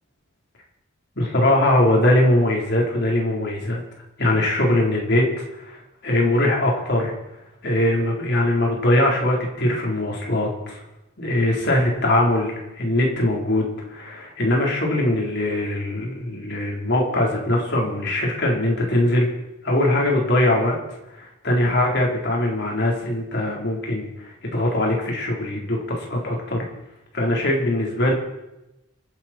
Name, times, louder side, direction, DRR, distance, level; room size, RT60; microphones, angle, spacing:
voice 1, 1.2-3.8 4.2-5.3 5.6-7.1 7.6-10.8 11.2-19.3 19.6-20.8 21.2-26.7 27.1-28.1, left 1 dB, 55° left, -1 dB, 4.1 m, -21 dB
27.0 x 10.5 x 4.5 m, 0.94 s
head